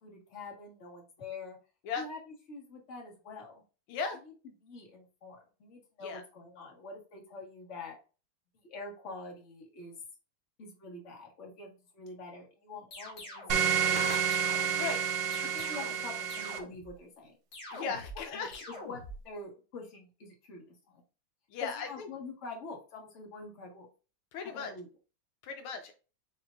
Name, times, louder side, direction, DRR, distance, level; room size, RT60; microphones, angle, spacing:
voice 1, 0.0-1.6 2.0-3.6 4.2-4.3 4.6-7.9 8.6-10.0 10.6-14.3 15.4-17.4 18.1-21.0 21.6-23.9 24.4-24.9, left 3 dB, 40° left, 0 dB, 1.5 m, -46 dB
voice 2, 3.9-4.2 6.0-6.2 14.8-15.0 17.7-18.6 21.5-22.1 24.3-24.7 25.4-25.9, left 5 dB, 80° left, 6 dB, 1.5 m, -37 dB
sound 1, 12.9-13.6 14.1-14.8 15.3-16.1 16.3-16.9 17.5-18.2 18.5-19.2, left 1 dB, 60° left, 2.2 m, -45 dB
sound 2, 13.5-16.6, right 7 dB, 75° right, 1.6 m, -29 dB
5.2 x 3.7 x 2.4 m, 0.34 s
omnidirectional pair, 2.4 m